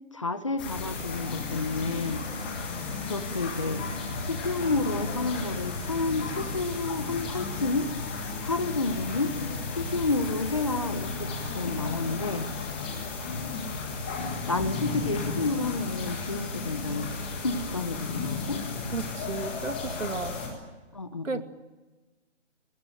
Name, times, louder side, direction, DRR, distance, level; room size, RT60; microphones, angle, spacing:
voice 1, 0.0-2.2 3.0-4.0 4.3-7.9 8.4-9.3 9.7-12.5 14.1-17.1 17.4-18.6 20.9-21.4, left 3 dB, 25° left, 12 dB, 1.0 m, -30 dB
sound 1, 0.6-20.5, left 4 dB, 10° left, 1.6 m, -34 dB
voice 2, 18.9-20.4 21.2-21.4, right 4 dB, 85° right, 9 dB, 2.5 m, -33 dB
26.5 x 19.5 x 9.2 m, 1.2 s
hypercardioid pair, 180°, 37 cm